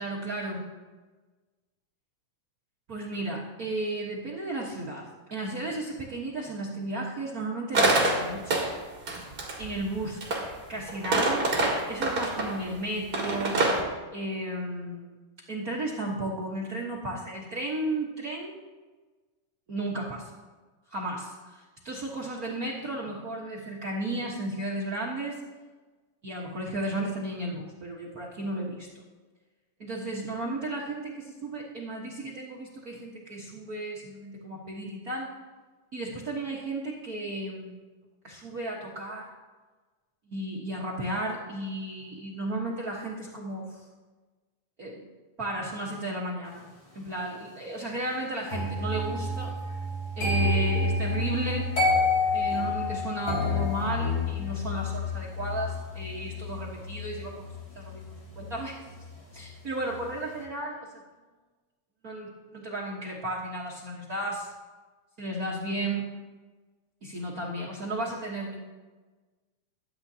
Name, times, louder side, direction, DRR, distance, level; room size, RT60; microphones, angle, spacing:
voice 1, 0.0-0.7 2.9-8.6 9.6-10.2 10.7-11.5 11.9-13.6 14.1-15.1 15.5-18.6 19.7-20.3 20.9-25.4 26.2-28.9 29.8-35.3 35.9-37.8 38.2-39.3 40.3-43.9 44.8-45.1 45.4-46.7 46.9-49.5 50.2-51.8 52.3-58.8 59.3-60.9 62.0-64.5 65.2-66.1 67.0-68.6, right 1 dB, 50° right, -4 dB, 1.1 m, -34 dB
sound 1, 7.7-8.7 9.1-10.5 10.9-12.6 13.1-13.8, right 2 dB, 35° right, 2.2 m, -26 dB
sound 2, 48.5-59.5 59.7-60.1, left 2 dB, 40° left, 4.0 m, -29 dB
22.0 x 9.7 x 2.8 m, 1.3 s
omnidirectional pair, 3.6 m